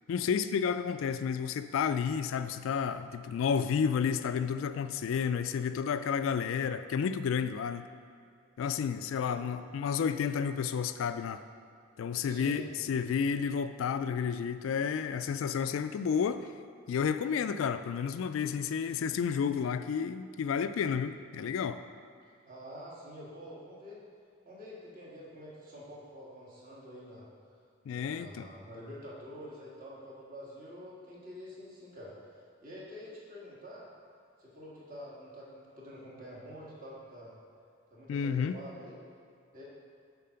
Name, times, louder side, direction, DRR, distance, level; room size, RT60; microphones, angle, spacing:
voice 1, 0.1-7.8 8.6-11.4 12.0-16.5 16.9-21.8 27.9-28.5 38.1-38.6, left 7 dB, 75° left, 11 dB, 0.3 m, -31 dB
voice 2, 9.2-9.7 12.2-12.7 22.5-24.0 24.4-27.3 27.9-33.9 34.4-37.4 37.9-39.0 39.5-39.6, equal, 40° right, -6 dB, 1.8 m, -47 dB
7.4 x 4.2 x 5.7 m, 2.3 s
head